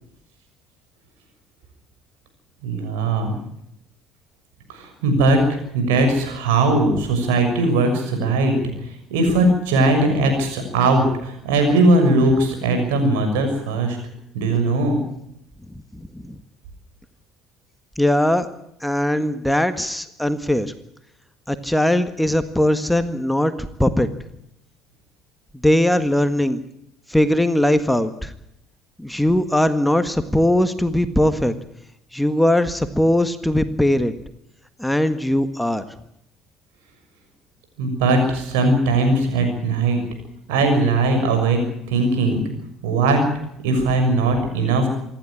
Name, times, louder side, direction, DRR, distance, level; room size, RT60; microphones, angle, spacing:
voice 1, 2.6-3.4 4.7-5.4 5.7-8.5 9.1-14.0 14.3-15.0 37.8-40.0 40.5-41.6 41.9-42.4 42.8-43.2 43.6-44.9, right 2 dB, 75° right, 5 dB, 6.6 m, -19 dB
voice 2, 15.9-16.4 18.0-18.5 18.8-20.7 21.5-23.5 23.8-24.1 25.6-26.6 27.1-28.3 29.0-31.5 32.1-34.1 34.8-35.8, left 1 dB, 5° left, 11 dB, 1.6 m, -20 dB
26.5 x 12.0 x 10.0 m, 0.77 s
hypercardioid pair, 60°, 0 cm